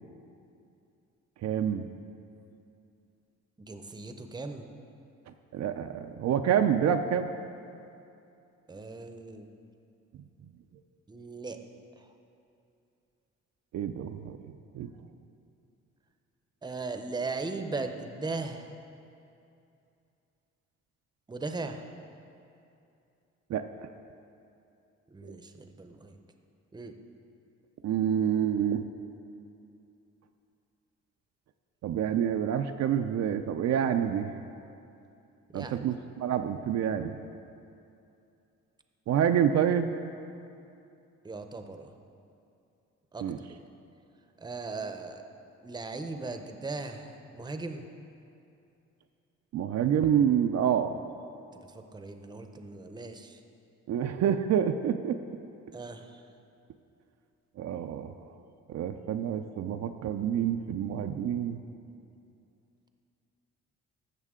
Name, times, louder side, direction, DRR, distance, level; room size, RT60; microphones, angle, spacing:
voice 1, 1.4-1.8 5.5-7.3 13.7-14.9 23.5-23.9 25.2-25.3 27.8-28.8 31.8-34.3 35.5-37.1 39.1-39.9 43.2-43.4 49.5-51.0 53.9-55.2 57.6-58.1 58.7-61.6, right 9 dB, 60° right, 7 dB, 0.5 m, -27 dB
voice 2, 3.6-4.7 8.7-9.5 11.1-11.6 12.0-12.1 16.6-18.7 21.3-21.8 25.1-26.2 26.7-26.9 35.5-36.0 41.2-41.9 43.1-43.5 44.4-45.2 45.6-47.9 51.7-53.4 55.7-56.2, right 3 dB, 15° right, 6 dB, 0.7 m, -38 dB
15.0 x 6.5 x 3.7 m, 2.6 s
cardioid pair, 90°, 30 cm